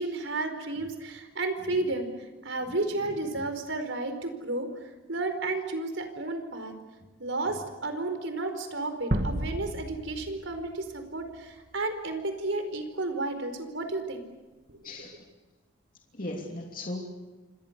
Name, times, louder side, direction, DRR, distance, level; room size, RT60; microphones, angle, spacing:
voice 1, 0.0-4.7 5.1-6.7 7.2-14.3 14.7-14.8, right 2 dB, 80° right, 7 dB, 4.6 m, -32 dB
sound 1, 9.1-11.5, right 1 dB, 45° right, 1.9 m, -32 dB
voice 2, 14.8-15.2 16.1-17.0, left 1 dB, 45° left, 0 dB, 3.0 m, -37 dB
29.0 x 25.5 x 6.8 m, 1.2 s
head